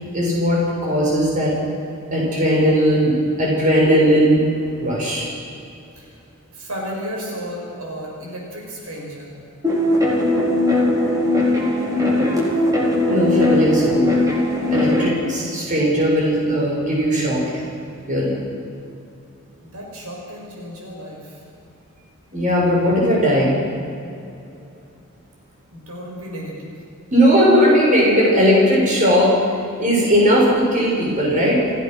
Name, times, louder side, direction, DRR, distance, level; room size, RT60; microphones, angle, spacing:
voice 1, 0.1-1.6 2.1-4.5 4.8-5.3 13.1-14.1 14.7-17.7 18.1-18.4 22.3-23.6 27.1-29.3 29.8-31.6, equal, 35° right, -3 dB, 6.9 m, -17 dB
voice 2, 6.5-9.3 19.6-21.4 25.7-26.8, equal, 85° right, -2 dB, 6.4 m, -33 dB
sound 1, 9.6-15.1, left 1 dB, 15° right, 4.6 m, -19 dB
28.5 x 16.5 x 6.6 m, 2.7 s
head